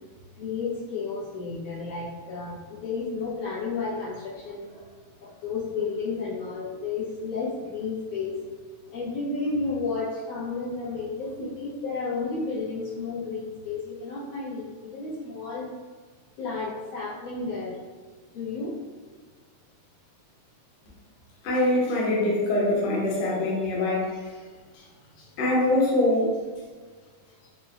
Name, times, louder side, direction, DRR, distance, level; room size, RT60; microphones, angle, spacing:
voice 1, 0.4-4.8 5.2-8.4 8.9-15.7 16.4-17.8 18.3-18.7, left 4 dB, 85° left, -8 dB, 2.5 m, -32 dB
voice 2, 21.4-24.1 25.4-26.3, left 1 dB, 65° left, -5 dB, 1.7 m, -23 dB
6.0 x 2.1 x 2.5 m, 1.5 s
omnidirectional pair, 3.4 m